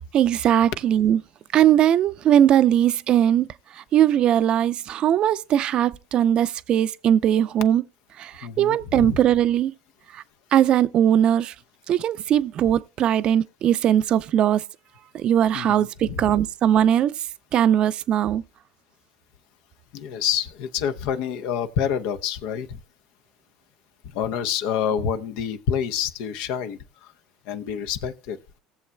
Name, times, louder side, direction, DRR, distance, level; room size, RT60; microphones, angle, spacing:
voice 1, 0.1-1.2 1.5-3.5 3.9-7.8 8.2-9.7 10.1-10.2 10.5-11.5 11.9-14.6 15.1-17.1 17.5-18.4, right 10 dB, 50° right, 0.5 m, -20 dB
voice 2, 8.4-9.2 15.5-16.3 19.9-22.8 24.0-27.1 27.5-28.4, left 8 dB, 70° left, 0.8 m, -28 dB
18.5 x 7.1 x 2.2 m
hypercardioid pair, 85°, 2 cm